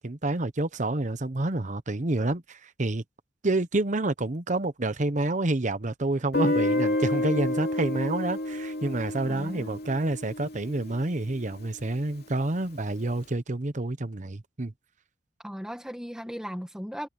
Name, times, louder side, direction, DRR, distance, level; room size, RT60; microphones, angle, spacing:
voice 1, 0.0-3.0 3.4-14.7, right 2 dB, 40° right, 1.0 m, -28 dB
Guitar, 6.3-11.2, left 1 dB, 60° left, 2.8 m, -29 dB
voice 2, 9.2-9.8 15.4-17.1, equal, 5° right, 1.9 m, -37 dB
head